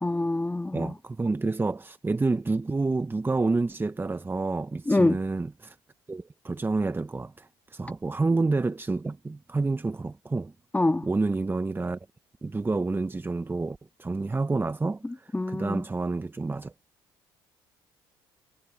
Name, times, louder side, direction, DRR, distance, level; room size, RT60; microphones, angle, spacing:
voice 1, 0.0-0.9 4.9-5.2 10.7-11.1 15.0-15.8, left 2 dB, 15° left, 1.9 m, -25 dB
voice 2, 0.7-5.8 6.1-10.5 11.0-12.0 12.4-16.7, right 3 dB, 20° right, 1.0 m, -29 dB
hypercardioid pair, 60°, 11 cm